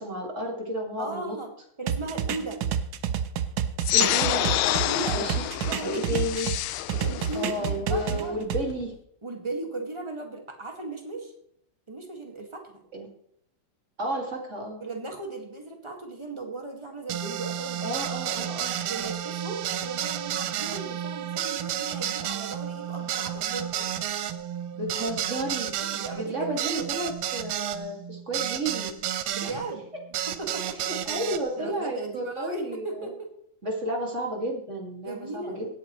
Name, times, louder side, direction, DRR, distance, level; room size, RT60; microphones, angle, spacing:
voice 1, 0.0-1.4 3.9-4.5 5.1-5.5 5.8-6.5 7.3-8.9 12.9-13.1 14.0-14.8 17.8-18.7 24.7-25.7 26.1-29.0 29.4-29.6 30.9-33.1 33.6-35.7, right 1 dB, 35° right, 0 dB, 2.5 m, -32 dB
voice 2, 1.0-1.5 1.8-2.6 4.7-6.2 6.9-8.4 9.2-11.3 11.9-12.8 14.8-18.5 18.9-23.9 25.9-27.0 29.3-29.8 30.3-30.9 31.6-33.3 35.0-35.6, right 3 dB, 15° right, 2 dB, 1.8 m, -37 dB
sound 1, 1.9-6.6 6.9-8.6, right 8 dB, 65° right, 1.0 m, -29 dB
sound 2, 3.8-8.8, left 14 dB, 80° left, 1.4 m, -28 dB
sound 3, 17.1-29.6 30.1-31.4, right 10 dB, 85° right, 1.6 m, -31 dB
17.5 x 8.9 x 3.1 m, 0.69 s
omnidirectional pair, 2.3 m